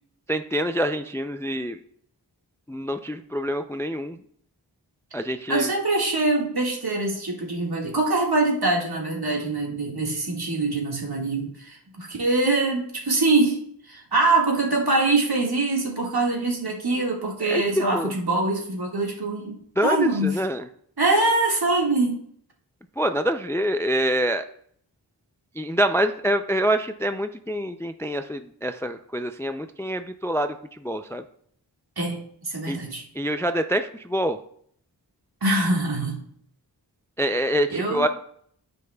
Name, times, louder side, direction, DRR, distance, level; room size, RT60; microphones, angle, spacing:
voice 1, 0.3-1.8 2.7-4.2 5.1-5.7 17.5-17.6 17.9-18.1 19.8-20.7 23.0-24.4 25.6-31.2 32.7-32.8 33.2-34.4 37.2-38.1, equal, 5° left, 9 dB, 0.3 m, -26 dB
voice 2, 5.5-13.6 13.8-20.4 21.0-22.2 32.0-33.0 35.4-36.2 37.7-38.1, right 2 dB, 60° right, -1 dB, 1.9 m, -24 dB
13.0 x 5.3 x 2.3 m, 0.63 s
wide cardioid pair, 60°, 43 cm